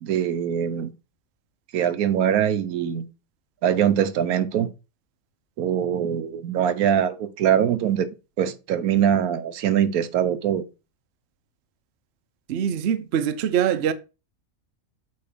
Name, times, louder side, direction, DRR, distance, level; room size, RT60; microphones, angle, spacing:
voice 1, 0.0-0.9 1.7-3.1 3.6-4.7 5.6-10.6, right 9 dB, 85° right, 1.2 m, -23 dB
voice 2, 12.5-13.9, right 9 dB, 55° right, 0.8 m, -23 dB
6.9 x 3.7 x 5.1 m
omnidirectional pair, 1.5 m